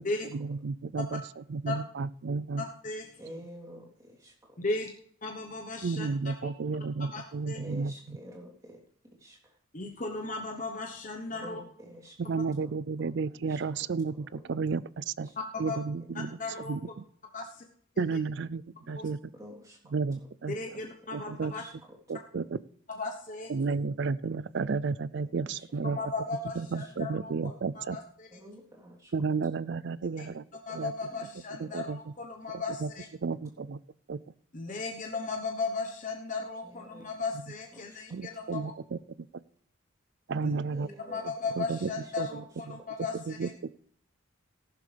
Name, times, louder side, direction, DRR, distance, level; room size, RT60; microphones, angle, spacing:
voice 1, 0.3-2.6 5.8-7.9 12.2-15.3 15.6-16.4 16.7-17.0 18.0-19.2 19.9-20.6 21.1-21.5 22.1-22.6 23.5-26.0 26.6-28.0 29.1-30.9 31.6-32.0 32.5-32.9 33.2-33.8 34.1-34.2 38.1-39.0 40.3-40.9 41.6-41.9 42.2-42.8 43.1-43.5, right 4 dB, 55° right, 19 dB, 0.4 m, -32 dB
voice 2, 2.6-3.1 4.6-4.9 5.2-6.1 6.4-6.5 7.1-7.6 9.7-11.6 15.5-15.8 16.4-16.7 17.3-17.6 18.9-19.1 20.5-21.6 23.0-23.5 25.8-28.3 30.2-30.3 30.7-33.0 34.5-38.6 40.4-40.5 41.1-43.5, left 3 dB, 40° left, 2 dB, 1.1 m, -36 dB
voice 3, 3.2-4.6 7.5-8.8 9.2-9.6 11.4-12.4 12.6-12.7 13.5-13.6 15.2-15.8 16.4-16.6 19.3-20.0 20.5-20.8 21.5-22.2 25.4-26.1 26.8-26.9 28.3-29.1 31.1-31.2 31.6-31.9 33.0-33.1 36.6-37.1 37.7-38.0 40.7-41.2 41.8-42.1, equal, 15° right, -4 dB, 3.4 m, -49 dB
14.5 x 12.0 x 3.4 m, 0.62 s
head